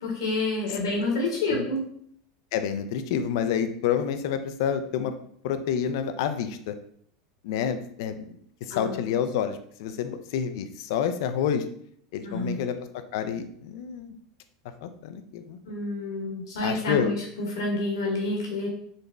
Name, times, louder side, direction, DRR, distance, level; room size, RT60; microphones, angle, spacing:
voice 1, 0.0-1.8 8.7-9.0 12.2-12.6 15.7-17.1 17.6-18.7, left 2 dB, 85° left, -1 dB, 1.3 m, -28 dB
voice 2, 2.5-5.1 5.4-6.7 7.4-8.2 8.7-11.6 12.1-12.8 13.1-14.1 14.8-15.6 16.6-17.1, left 8 dB, 70° left, 9 dB, 0.4 m, -28 dB
3.9 x 2.1 x 3.3 m, 0.64 s
hypercardioid pair, 105°, 2 cm